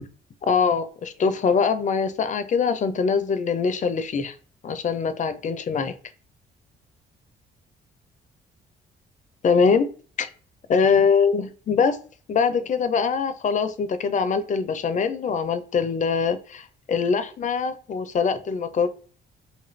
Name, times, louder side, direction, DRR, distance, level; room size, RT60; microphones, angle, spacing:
voice 1, 0.5-4.3 4.6-6.0 9.4-9.9 10.2-10.3 10.7-12.0 12.3-18.9, left 5 dB, 40° left, 0.4 m, -23 dB
2.6 x 2.4 x 3.0 m
cardioid pair, 90°, 20 cm